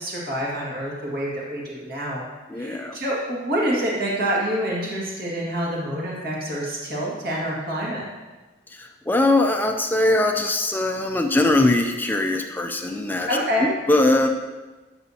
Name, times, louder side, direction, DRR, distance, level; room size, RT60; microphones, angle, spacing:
voice 1, 0.0-2.2 2.6-8.0 13.3-13.7, equal, 50° right, -4 dB, 1.9 m, -27 dB
voice 2, 2.5-3.0 8.7-14.3, left 2 dB, 10° left, 4 dB, 0.4 m, -21 dB
11.5 x 6.2 x 2.8 m, 1.2 s
head